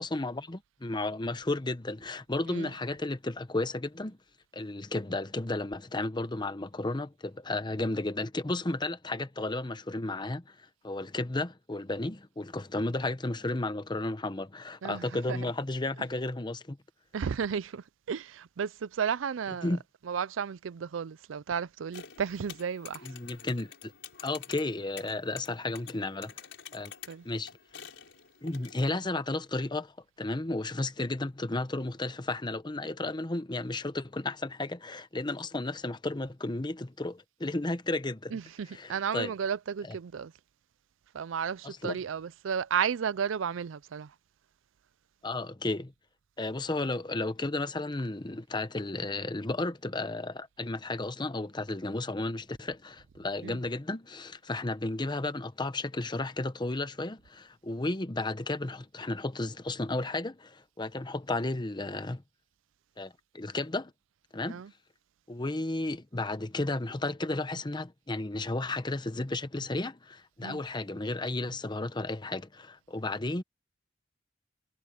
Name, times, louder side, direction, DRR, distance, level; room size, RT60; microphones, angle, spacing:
voice 1, 0.0-4.2 4.5-16.8 19.6-19.8 23.0-23.9 24.2-26.3 26.7-26.9 27.2-27.5 28.4-38.4 38.7-39.3 41.6-42.0 45.2-45.9 46.4-62.2 63.0-63.9 64.3-64.6 65.3-73.4, left 2 dB, 25° left, 0.9 m, -33 dB
voice 2, 14.8-15.5 17.1-19.8 20.1-23.1 27.1-27.2 38.3-40.3 41.1-44.1 53.4-53.6 64.5-64.7 70.4-70.6, right 7 dB, 80° right, 0.4 m, -33 dB
sound 1, 21.9-28.9, left 8 dB, 70° left, 6.0 m, -48 dB
head